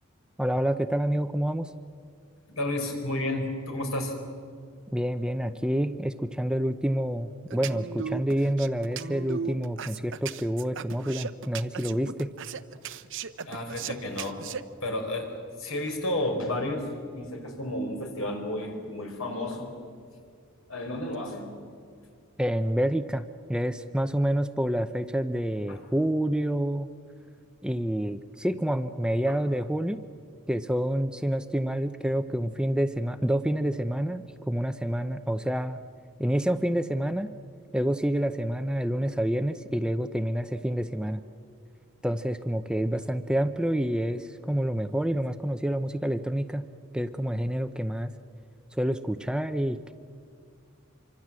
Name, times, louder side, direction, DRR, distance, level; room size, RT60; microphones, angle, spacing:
voice 1, 0.4-1.7 4.9-12.3 22.4-26.9 27.6-30.0 30.5-35.8 36.2-37.3 37.7-41.2 42.0-46.7 46.9-48.1 48.7-49.9, equal, 5° right, 10 dB, 0.6 m, -28 dB
voice 2, 2.5-4.1 13.5-14.4 14.8-15.3 15.6-19.7 20.7-21.5 25.7-25.8 29.3-29.4, left 1 dB, 75° left, 3 dB, 5.1 m, -31 dB
sound 1, 7.5-14.6, right 6 dB, 60° right, 0.8 m, -36 dB
26.5 x 24.5 x 7.6 m, 2.2 s
head